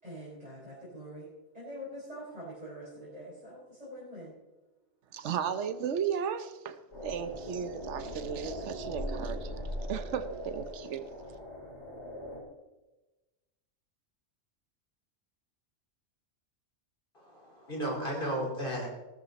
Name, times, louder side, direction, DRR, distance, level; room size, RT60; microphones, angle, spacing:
voice 1, 0.0-1.3 1.5-4.3, equal, 30° right, -8 dB, 5.1 m, -44 dB
voice 2, 5.1-11.1, right 8 dB, 80° right, 10 dB, 1.1 m, -35 dB
sound 1, 6.9-12.4, equal, 70° left, 5.5 m, -40 dB
voice 3, 17.1-18.9, right 1 dB, 45° left, -1 dB, 4.3 m, -34 dB
16.0 x 13.5 x 4.1 m, 1.1 s
omnidirectional pair, 1.2 m